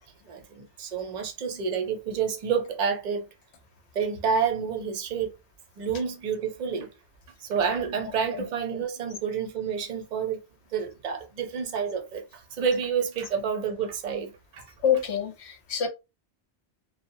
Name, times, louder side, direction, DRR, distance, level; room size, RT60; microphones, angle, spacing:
voice 1, 0.3-3.3 3.9-5.4 5.8-6.9 7.4-10.4 10.7-14.7, right 6 dB, 50° right, 0.6 m, -29 dB
voice 2, 14.8-15.9, left 8 dB, 75° left, 0.9 m, -26 dB
2.7 x 2.1 x 2.6 m
omnidirectional pair, 1.2 m